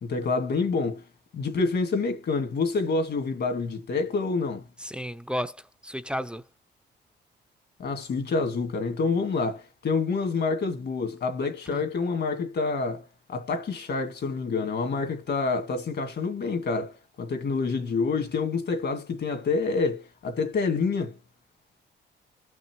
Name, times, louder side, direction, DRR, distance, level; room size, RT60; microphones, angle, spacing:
voice 1, 0.0-1.0 1.3-4.7 7.8-21.1, left 4 dB, 55° left, 2.3 m, -27 dB
voice 2, 4.8-6.4 11.7-11.8, equal, 5° right, 0.6 m, -33 dB
17.5 x 6.0 x 3.1 m
cardioid pair, 90°, 20 cm